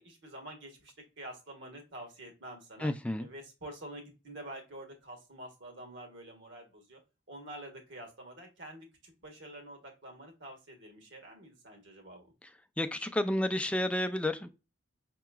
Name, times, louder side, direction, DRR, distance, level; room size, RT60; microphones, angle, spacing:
voice 1, 0.0-2.9 3.2-7.0 7.3-12.2, right 1 dB, 60° right, 1.4 m, -47 dB
voice 2, 2.8-3.3 12.8-14.5, left 1 dB, 5° left, 0.3 m, -31 dB
5.6 x 2.9 x 2.3 m
head